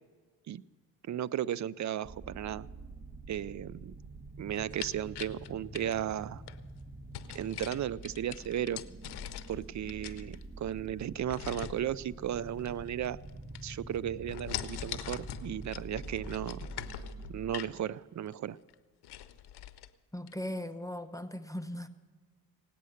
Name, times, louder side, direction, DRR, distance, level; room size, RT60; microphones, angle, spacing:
voice 1, 1.1-2.7 3.3-3.9 4.4-6.4 7.3-8.8 9.5-13.2 13.6-16.7 17.3-18.6, right 10 dB, 45° right, 19 dB, 0.5 m, -35 dB
sound 1, 2.0-17.6, right 2 dB, 25° right, 1.3 m, -47 dB
sound 2, 4.5-6.6 7.1-9.6 9.9-10.7 11.3-11.8 12.6-13.3 13.6-14.0 14.3-17.8 18.3-18.4 18.7-18.8 19.0-19.9 20.3-20.4, left 12 dB, 75° left, 0.8 m, -42 dB
voice 2, 20.1-21.9, left 1 dB, 10° left, 8 dB, 0.9 m, -38 dB
18.0 x 9.4 x 6.5 m, 1.5 s
cardioid pair, 75°, 40 cm